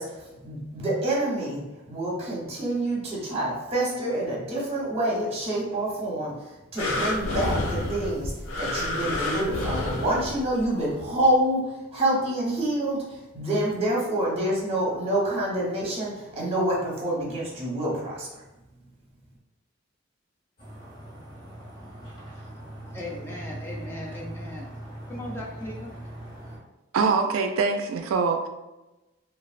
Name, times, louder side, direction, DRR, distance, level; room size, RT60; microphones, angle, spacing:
voice 1, 0.0-18.3, right 1 dB, 30° right, -4 dB, 0.9 m, -27 dB
sound 1, 6.8-10.7 11.3-11.4, left 1 dB, 80° left, 0.5 m, -29 dB
sound 2, 20.6-26.6, right 1 dB, 45° left, 1.3 m, -40 dB
voice 2, 22.9-24.7 25.1-25.9, left 1 dB, 10° left, -4 dB, 0.4 m, -37 dB
voice 3, 26.9-28.5, right 4 dB, 80° right, 6 dB, 0.3 m, -24 dB
3.2 x 2.4 x 2.4 m, 1.0 s
head